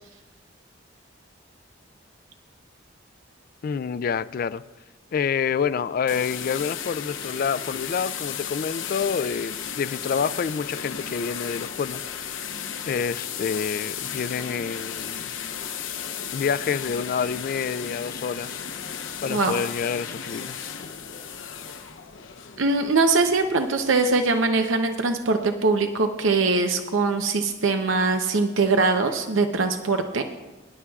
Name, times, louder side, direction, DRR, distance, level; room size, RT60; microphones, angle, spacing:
voice 1, 3.6-4.6 5.1-15.3 16.3-18.6 19.2-20.9, left 6 dB, 45° left, 0.3 m, -28 dB
sound 1, 6.1-24.4, left 8 dB, 80° left, 0.8 m, -35 dB
voice 2, 19.3-19.6 22.6-30.2, right 3 dB, 85° right, 0.7 m, -22 dB
23.0 x 11.0 x 2.4 m
head